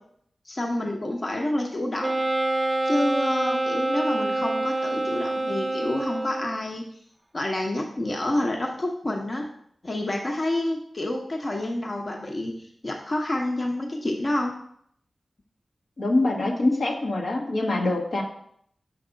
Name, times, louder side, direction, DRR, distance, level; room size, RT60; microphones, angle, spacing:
voice 1, 0.4-2.2 2.9-6.8 7.3-9.5 9.8-14.5, left 1 dB, 50° left, 1 dB, 1.0 m, -28 dB
Wind instrument woodwind instrument, 2.0-6.6, right 2 dB, 30° right, 0.4 m, -26 dB
voice 2, 16.0-18.2, left 2 dB, 80° left, -2 dB, 1.3 m, -24 dB
6.6 x 3.5 x 5.1 m, 0.67 s
cardioid pair, 45°, 0 cm